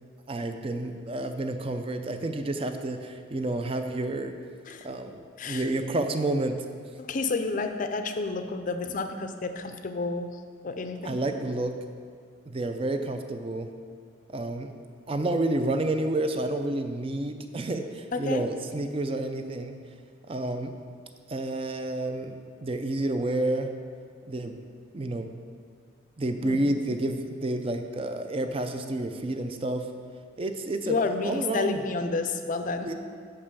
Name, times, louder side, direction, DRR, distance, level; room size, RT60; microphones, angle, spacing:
voice 1, 0.3-4.3 4.8-5.2 5.5-6.6 11.0-11.7 12.5-13.7 14.3-14.7 15.1-19.7 20.3-20.7 21.3-22.4 22.6-23.7 24.3-24.6 24.9-25.3 26.2-29.9 30.4-31.8 32.8-32.9, right 2 dB, 30° right, 7 dB, 0.4 m, -29 dB
voice 2, 7.0-10.3 10.6-11.2 18.1-18.4 26.4-26.6 30.8-32.9, left 3 dB, 40° left, 7 dB, 0.5 m, -30 dB
5.8 x 5.4 x 6.8 m, 2.1 s
head